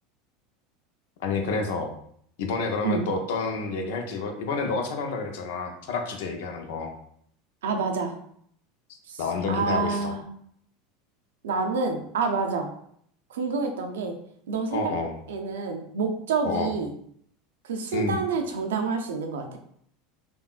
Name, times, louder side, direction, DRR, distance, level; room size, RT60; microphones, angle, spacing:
voice 1, 1.2-1.9 2.4-6.9 9.2-10.1 14.7-15.1 16.4-16.7 17.9-18.2, left 4 dB, 75° left, 4 dB, 0.6 m, -29 dB
voice 2, 7.6-8.2 9.1-9.2 9.5-10.2 11.4-12.7 13.3-14.1 14.5-14.9 15.3-16.9 17.6-19.6, right 4 dB, 85° right, 4 dB, 0.5 m, -28 dB
3.5 x 2.3 x 2.4 m, 0.66 s
hypercardioid pair, 100°, 0 cm